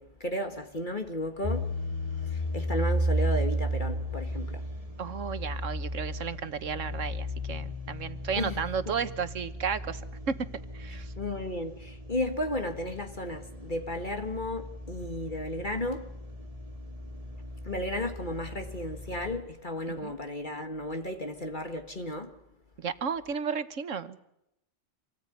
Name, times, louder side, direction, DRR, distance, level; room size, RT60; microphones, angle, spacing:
voice 1, 0.0-1.7 2.2-4.6 8.4-8.9 11.2-16.1 17.6-22.3, left 1 dB, 40° left, 2.1 m, -34 dB
sound 1, 1.4-19.4, equal, 30° right, 3.0 m, -35 dB
voice 2, 5.0-10.0 10.7-11.1 19.9-20.1 22.8-24.2, right 6 dB, 80° right, 1.6 m, -33 dB
26.5 x 18.5 x 9.5 m
omnidirectional pair, 1.3 m